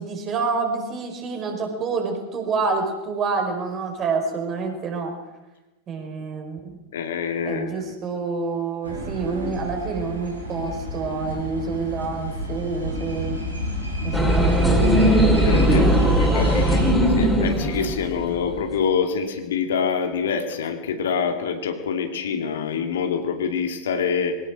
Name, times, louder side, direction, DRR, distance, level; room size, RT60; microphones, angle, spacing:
voice 1, 0.0-5.1 5.9-6.8 7.4-13.4 14.0-15.1 15.7-16.8, right 4 dB, 30° right, 4 dB, 5.0 m, -28 dB
voice 2, 6.9-7.9 15.4-15.8 16.3-24.4, left 6 dB, 60° left, 5 dB, 2.5 m, -26 dB
sound 1, 8.8-16.9, equal, 85° right, 6.8 m, -30 dB
sound 2, 14.1-18.6, equal, ahead, 4.7 m, -19 dB
22.5 x 18.5 x 6.2 m, 1.1 s
figure-of-eight pair, 90°, 0 cm